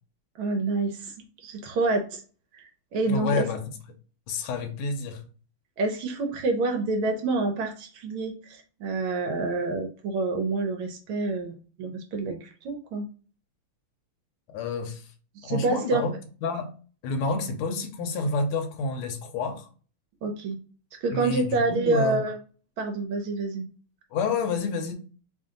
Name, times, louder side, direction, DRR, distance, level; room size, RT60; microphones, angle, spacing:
voice 1, 0.4-1.1 1.4-2.2 2.5-3.5 5.8-13.1 15.4-16.0 20.2-20.6 21.0-22.3 22.8-23.6, right 3 dB, 75° right, 4 dB, 1.5 m, -27 dB
voice 2, 3.1-3.6 4.3-5.3 14.5-15.1 15.4-16.1 16.4-16.7 17.0-19.7 21.1-22.2 24.1-24.9, left 3 dB, 80° left, 4 dB, 1.6 m, -29 dB
3.6 x 2.6 x 3.7 m, 0.38 s
omnidirectional pair, 2.4 m